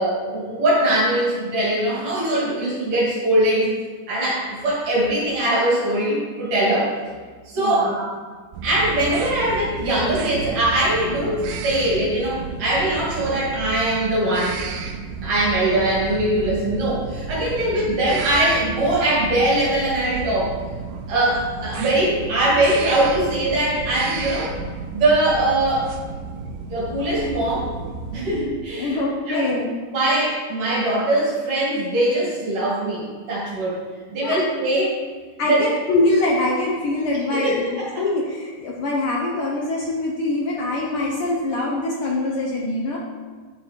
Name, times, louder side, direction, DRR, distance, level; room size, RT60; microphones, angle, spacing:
voice 1, 0.0-3.7 4.1-6.9 7.5-8.1 8.6-14.6 15.2-20.5 21.1-24.6 24.9-25.9 26.7-27.8 28.1-29.5 29.9-33.8 34.1-34.9 35.5-35.6 37.3-37.7 37.9-38.0, right 1 dB, 70° right, -7 dB, 4.1 m, -21 dB
voice 2, 7.6-8.0 28.8-29.7 34.2-34.4 35.4-43.0, left 2 dB, 80° left, -3 dB, 1.2 m, -24 dB
sound 1, 8.5-28.5, right 4 dB, 90° right, 2.6 m, -32 dB
9.7 x 7.5 x 4.6 m, 1.5 s
omnidirectional pair, 3.9 m